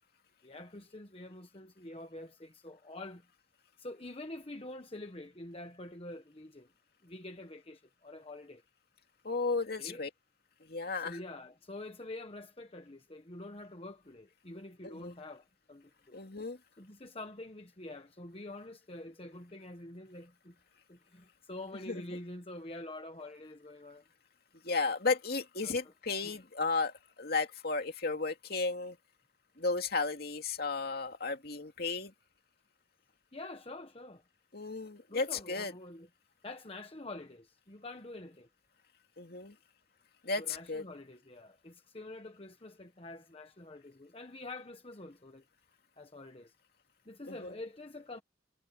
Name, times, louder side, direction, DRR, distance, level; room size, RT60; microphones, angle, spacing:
voice 1, 0.4-3.2 3.8-6.7 7.0-8.6 9.8-10.0 10.9-16.2 16.8-20.5 20.9-24.0 25.6-25.8 26.2-26.4 33.3-34.2 35.1-36.1 36.4-38.5 40.4-45.4 46.0-46.5 47.1-48.2, left 2 dB, 30° left, 1.2 m, -46 dB
voice 2, 9.2-10.1 10.6-11.2 14.8-15.1 16.1-16.6 21.9-22.0 24.6-29.0 29.6-32.1 34.5-35.7 39.2-39.5 40.2-40.8 47.3-47.5, left 3 dB, 55° left, 2.6 m, -34 dB
head